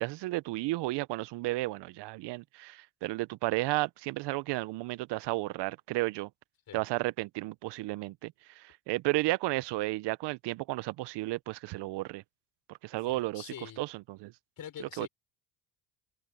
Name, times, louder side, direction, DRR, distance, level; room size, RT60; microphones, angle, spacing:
voice 1, 0.0-6.3 6.7-12.2 12.8-14.3 14.8-15.1, right 20 dB, 60° right, 0.7 m, -33 dB
voice 2, 13.1-13.8 14.6-15.1, left 10 dB, 45° left, 5.4 m, -45 dB
supercardioid pair, 100°, 48 cm